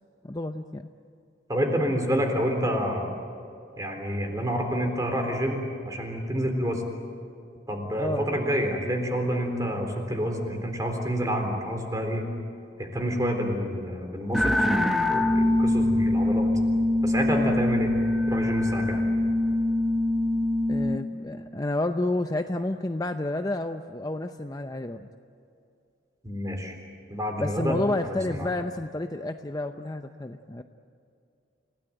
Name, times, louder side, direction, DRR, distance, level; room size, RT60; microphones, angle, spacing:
voice 1, 0.2-0.9 8.0-8.3 17.3-17.5 20.7-25.1 27.4-30.6, left 2 dB, 20° left, 7 dB, 0.6 m, -30 dB
voice 2, 1.5-3.1 3.8-6.8 7.7-12.3 12.8-16.5 17.0-17.9 18.3-19.0 26.2-26.7 27.1-27.8 28.0-28.5, equal, 20° right, 3 dB, 3.8 m, -28 dB
sound 1, 14.3-21.0, left 1 dB, ahead, 1.2 m, -24 dB
30.0 x 17.5 x 9.0 m, 2.5 s
head